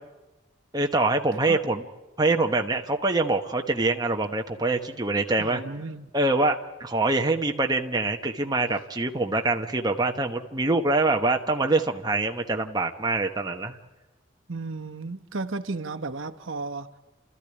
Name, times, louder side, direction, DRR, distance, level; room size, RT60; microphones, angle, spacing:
voice 1, 0.7-1.8 2.2-5.6 6.1-13.8, right 2 dB, 20° right, 1.1 m, -24 dB
voice 2, 5.4-6.1 14.5-16.9, right 3 dB, 80° right, 1.1 m, -34 dB
30.0 x 14.0 x 9.9 m
head